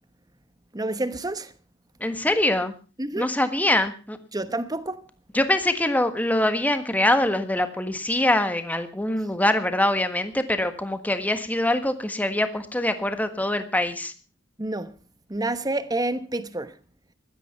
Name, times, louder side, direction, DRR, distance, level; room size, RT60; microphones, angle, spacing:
voice 1, 0.7-1.5 3.0-3.3 4.3-5.0 14.6-14.9 15.3-16.7, right 2 dB, 20° right, 1.0 m, -28 dB
voice 2, 2.0-2.7 3.2-4.2 5.3-14.1, left 1 dB, 10° left, 1.5 m, -24 dB
16.5 x 12.0 x 5.8 m
head